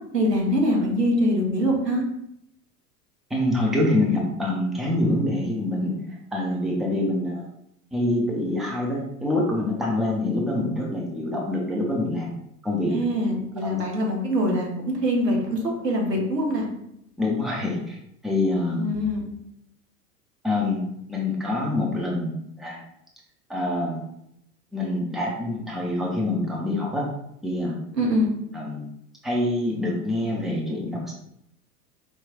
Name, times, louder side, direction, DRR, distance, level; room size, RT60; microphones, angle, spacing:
voice 1, 0.1-2.0 12.9-14.7 15.0-15.6 15.8-16.7 18.8-19.2 28.0-28.3, equal, 85° right, 0 dB, 1.0 m, -23 dB
voice 2, 3.3-5.9 6.3-7.4 7.9-12.3 12.6-12.9 13.6-13.8 17.2-18.0 18.2-18.8 20.4-20.8 21.1-22.3 22.6-22.8 23.5-24.0 24.7-27.1 27.4-27.8 28.5-28.8 29.2-31.1, left 1 dB, ahead, -3 dB, 0.5 m, -25 dB
4.5 x 3.0 x 2.4 m, 0.78 s
figure-of-eight pair, 85°, 48 cm